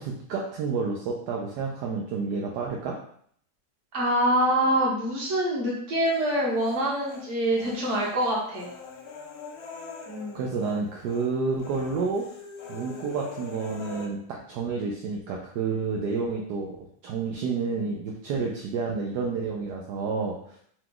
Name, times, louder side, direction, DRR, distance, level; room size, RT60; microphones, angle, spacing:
voice 1, 0.0-3.0 10.3-12.2 12.7-16.8 17.0-20.6, right 4 dB, 75° right, -1 dB, 1.1 m, -30 dB
voice 2, 3.9-8.7 10.1-10.4, right 1 dB, 45° right, -3 dB, 1.4 m, -25 dB
Human voice, 6.1-7.3 7.6-10.8 11.1-11.3 11.6-14.1, left 5 dB, 65° left, 1.1 m, -43 dB
4.8 x 2.3 x 3.8 m, 0.63 s
omnidirectional pair, 1.9 m